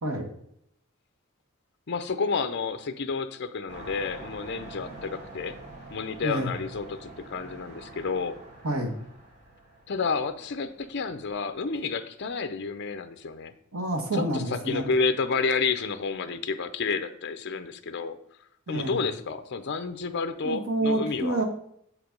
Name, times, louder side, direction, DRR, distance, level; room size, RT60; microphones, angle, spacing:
voice 1, 1.9-5.6 5.9-8.4 9.9-13.5 14.1-18.2 18.7-21.4, left 4 dB, 50° left, 10 dB, 0.5 m, -30 dB
sound 1, 3.7-11.6, right 2 dB, 30° right, 2.0 m, -46 dB
voice 2, 6.2-6.5 8.6-9.0 13.7-14.8 18.7-19.0 20.4-21.4, right 1 dB, 80° right, 3 dB, 1.5 m, -28 dB
7.5 x 4.9 x 5.2 m, 0.71 s
head